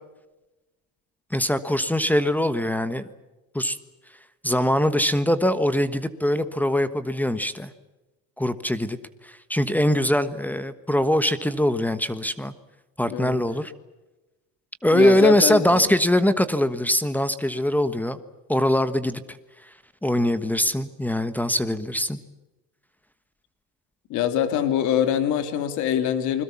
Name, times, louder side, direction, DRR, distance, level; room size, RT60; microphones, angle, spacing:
voice 1, 1.3-3.0 3.5-3.8 4.4-7.7 8.4-9.0 9.2-12.5 13.0-13.7 14.8-18.2 18.5-19.2 20.0-22.2, left 1 dB, 5° left, 12 dB, 1.3 m, -22 dB
voice 2, 13.0-13.4 14.9-15.9 24.1-26.4, left 10 dB, 70° left, 8 dB, 3.1 m, -24 dB
28.5 x 21.5 x 7.2 m, 1.1 s
cardioid pair, 125°, 31 cm